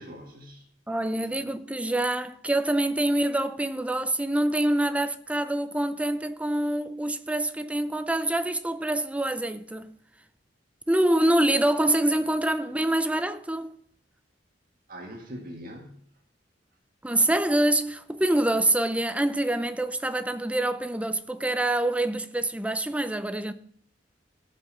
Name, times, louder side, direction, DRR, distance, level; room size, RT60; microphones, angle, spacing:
voice 1, 0.0-0.7 1.1-1.5 14.9-16.1, equal, 50° right, 1.8 m, -42 dB
voice 2, 0.9-10.0 10.9-13.8 17.0-23.5, right 1 dB, 5° right, 0.5 m, -25 dB
15.5 x 5.4 x 6.2 m
head